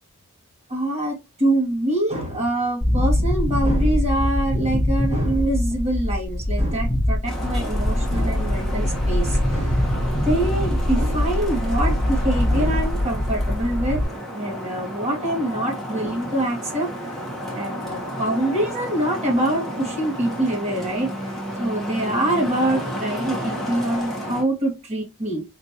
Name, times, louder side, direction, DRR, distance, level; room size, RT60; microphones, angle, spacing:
voice 1, 0.7-9.8 10.2-14.0 14.3-16.9 17.5-21.1 21.6-25.4, right 1 dB, 30° right, 1.9 m, -25 dB
sound 1, 2.8-14.0, left 1 dB, 25° left, 1.5 m, -23 dB
Traffic noise roadway noise, 7.3-24.4, equal, ahead, 1.1 m, -32 dB
4.2 x 3.2 x 2.7 m
head